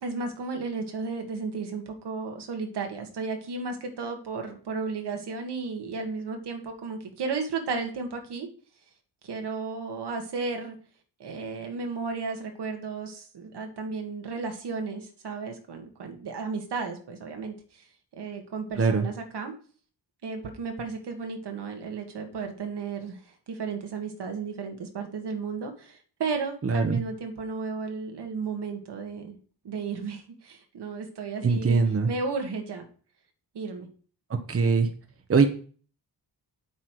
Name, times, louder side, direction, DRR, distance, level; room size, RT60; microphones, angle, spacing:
voice 1, 0.0-8.5 9.2-10.8 11.2-17.9 18.1-19.5 20.2-29.4 29.6-31.8 32.1-32.8 33.5-33.9, right 4 dB, 75° right, 4 dB, 1.9 m, -34 dB
voice 2, 26.6-27.0 31.4-32.1 34.5-34.9 35.3-35.5, right 4 dB, 35° right, 6 dB, 1.1 m, -22 dB
8.5 x 8.3 x 4.7 m, 0.42 s
wide cardioid pair, 125°, 41 cm